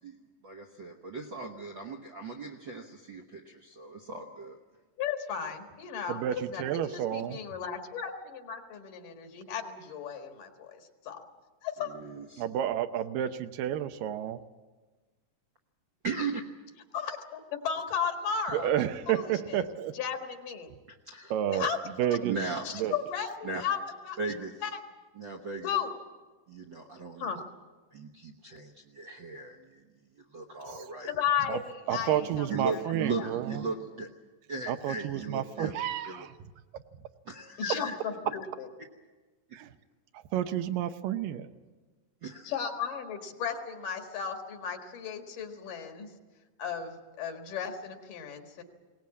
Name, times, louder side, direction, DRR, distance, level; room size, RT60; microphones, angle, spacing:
voice 1, 0.0-4.6 11.8-12.4 16.0-16.4 21.1-21.3 22.2-22.7 23.4-23.6 24.2-24.5 25.2-25.7 26.5-27.4 27.9-29.8 30.2-31.1 32.5-34.1 34.5-36.3 37.2-37.9 42.2-42.5, right 3 dB, 60° right, 4 dB, 1.2 m, -37 dB
voice 2, 5.0-11.2 11.6-12.0 16.9-18.7 19.1-19.6 19.9-20.7 21.5-22.3 22.6-24.2 24.6-24.8 25.6-25.9 27.2-27.4 31.0-33.3 37.6-38.7 42.4-46.1 46.6-48.6, left 7 dB, 70° left, 5 dB, 3.3 m, -35 dB
voice 3, 6.1-7.4 12.4-14.4 18.5-19.9 21.3-21.7 22.0-22.3 22.8-22.9 31.5-31.6 31.9-33.5 34.7-36.3 39.5-39.7 40.3-41.5, right 11 dB, 80° right, 9 dB, 2.5 m, -30 dB
21.5 x 19.0 x 8.4 m, 1.3 s
omnidirectional pair, 3.9 m